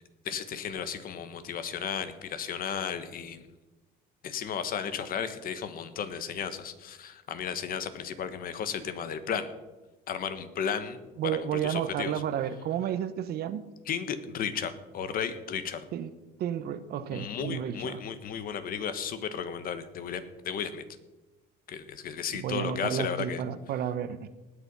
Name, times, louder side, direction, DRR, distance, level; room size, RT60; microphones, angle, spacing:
voice 1, 0.2-3.5 4.2-9.5 10.1-12.1 13.9-15.8 17.1-20.8 21.7-23.4, left 7 dB, 60° left, 1.4 m, -34 dB
voice 2, 11.2-13.6 15.9-16.1 16.4-18.0 22.3-24.3, right 9 dB, 70° right, 1.0 m, -32 dB
19.5 x 6.9 x 5.6 m
cardioid pair, 110°, 17 cm